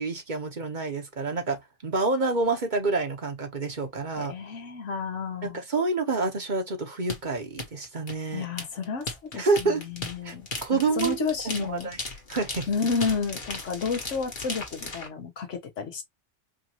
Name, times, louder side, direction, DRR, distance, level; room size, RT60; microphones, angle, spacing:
voice 1, 0.0-4.3 5.4-8.5 9.4-9.8 10.2-10.3 10.6-11.2 11.4-12.0 12.3-12.7, right 3 dB, 40° right, 1.1 m, -28 dB
voice 2, 4.2-5.6 8.3-11.9 12.7-16.0, left 5 dB, 85° left, 1.4 m, -31 dB
sound 1, 7.1-15.1, left 3 dB, 45° left, 1.4 m, -36 dB
5.0 x 2.6 x 2.9 m
omnidirectional pair, 1.2 m